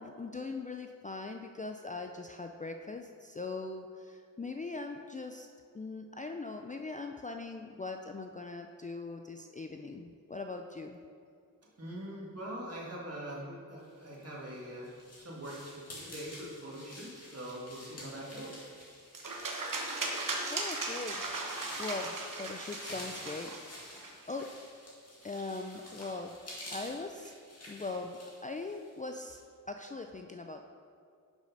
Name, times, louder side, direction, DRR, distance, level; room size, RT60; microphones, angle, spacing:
voice 1, 0.0-5.5 5.7-11.0 20.5-23.5 24.0-24.5 25.2-26.3 26.7-27.3 27.7-29.4 29.7-30.6, left 3 dB, 25° left, 4 dB, 0.3 m, -41 dB
voice 2, 11.8-18.7 19.3-19.4 20.0-20.1, right 1 dB, 45° right, -4 dB, 1.8 m, -43 dB
sound 1, 14.2-29.4, left 1 dB, 45° left, 2.0 m, -49 dB
sound 2, 19.1-24.3, right 3 dB, 65° right, 1.0 m, -37 dB
6.3 x 5.2 x 5.3 m, 2.3 s
wide cardioid pair, 75°, 34 cm